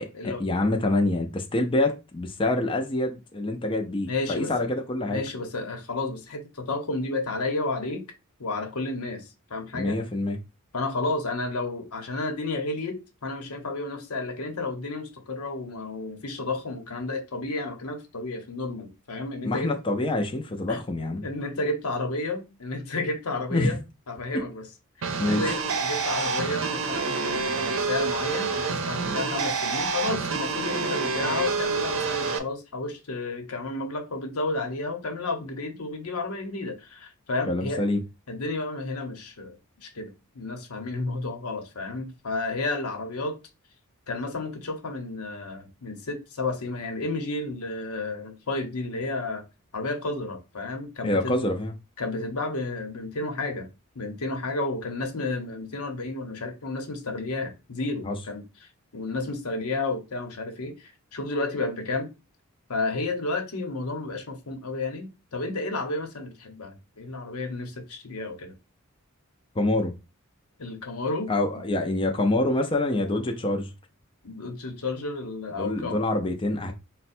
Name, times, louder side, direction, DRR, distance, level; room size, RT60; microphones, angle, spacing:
voice 1, 0.2-5.2 9.7-10.4 19.4-21.3 23.5-23.8 25.2-25.4 37.5-38.0 51.0-51.7 58.0-58.1 69.6-69.9 71.3-73.7 75.6-76.7, left 2 dB, 25° left, 0.4 m, -26 dB
voice 2, 4.1-4.5 5.1-8.0 8.4-10.0 10.7-13.0 13.2-19.7 20.7-20.8 21.2-23.8 24.1-24.7 25.0-37.8 38.3-43.4 44.1-49.4 49.7-51.4 52.0-53.7 53.9-62.1 62.7-68.5 70.6-71.6 74.2-76.0, left 2 dB, 90° left, 0.9 m, -32 dB
sound 1, 25.0-32.4, right 4 dB, 65° right, 0.6 m, -28 dB
4.1 x 2.2 x 4.2 m
head